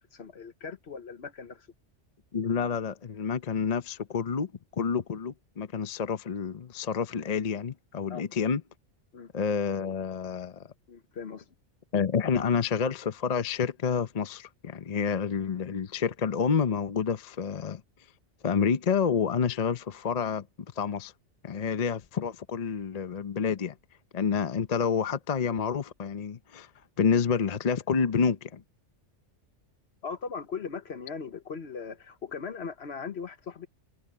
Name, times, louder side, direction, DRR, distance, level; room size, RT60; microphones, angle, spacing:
voice 1, 0.0-1.7 8.1-8.2 9.1-9.3 10.9-11.5 30.0-33.7, left 5 dB, 60° left, 1.3 m, -39 dB
voice 2, 2.3-8.6 9.3-10.7 11.9-17.8 18.4-20.5 20.8-21.1 21.4-23.7 24.1-26.7 27.0-28.6, left 6 dB, 40° left, 0.7 m, -28 dB
omnidirectional pair, 1.2 m